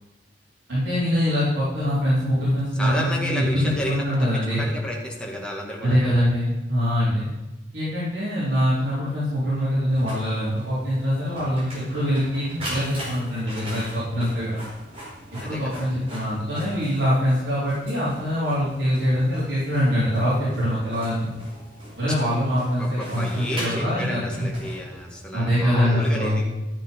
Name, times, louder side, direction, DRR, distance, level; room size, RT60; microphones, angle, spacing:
voice 1, 0.7-4.7 5.8-7.3 7.7-14.6 15.4-21.3 22.0-24.5 25.3-26.4, equal, 80° right, -10 dB, 4.0 m, -23 dB
voice 2, 2.8-6.2 15.4-15.8 22.8-26.4, left 1 dB, 5° left, -2 dB, 2.2 m, -32 dB
Printer, 9.9-25.3, equal, 35° right, 4.7 m, -40 dB
13.0 x 7.5 x 5.5 m, 1.0 s
head